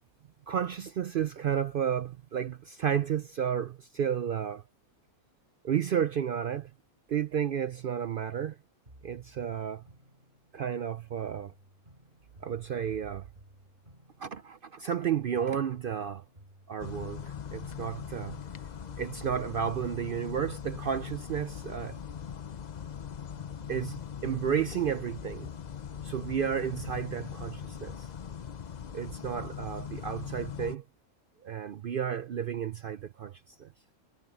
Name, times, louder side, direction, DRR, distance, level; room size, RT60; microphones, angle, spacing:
voice 1, 0.5-4.6 5.6-6.7 7.1-8.6 9.0-9.8 10.5-11.5 12.4-13.3 14.2-16.2 16.7-18.4 19.0-22.0 23.7-25.5 26.0-28.1 28.9-30.8 31.4-33.7, right 8 dB, 70° right, 0.5 m, -32 dB
sound 1, 8.9-11.0 11.4-15.1 15.4-19.0 19.4-23.1 23.4-24.9, right 1 dB, 35° right, 6.0 m, -58 dB
sound 2, 16.8-30.8, left 8 dB, 45° left, 0.6 m, -41 dB
omnidirectional pair, 1.5 m